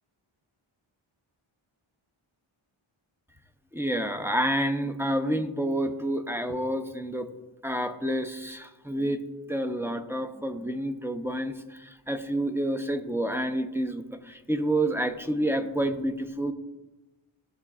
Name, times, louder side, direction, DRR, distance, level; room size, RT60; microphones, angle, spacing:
voice 1, 3.7-7.3 7.6-9.2 9.5-16.5, right 1 dB, 5° right, 7 dB, 0.5 m, -29 dB
15.5 x 6.2 x 2.4 m, 1.1 s
wide cardioid pair, 115°, 50 cm